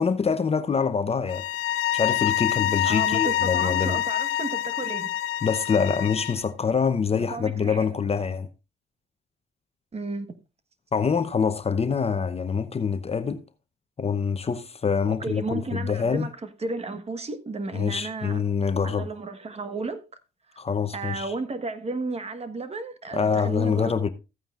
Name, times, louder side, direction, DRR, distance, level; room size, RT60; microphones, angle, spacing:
voice 1, 0.0-1.5 1.9-4.0 5.4-8.5 10.9-13.4 14.0-16.3 17.7-19.1 20.6-21.3 23.1-24.1, left 6 dB, 30° left, 0.8 m, -25 dB
sound 1, 1.3-6.4, left 12 dB, 85° left, 0.7 m, -26 dB
voice 2, 2.8-5.1 7.1-7.9 9.9-10.3 15.1-18.4 18.8-20.0 20.5-20.6 20.9-24.1, right 3 dB, 30° right, 1.4 m, -33 dB
14.5 x 8.9 x 2.5 m
cardioid pair, 90°, 20 cm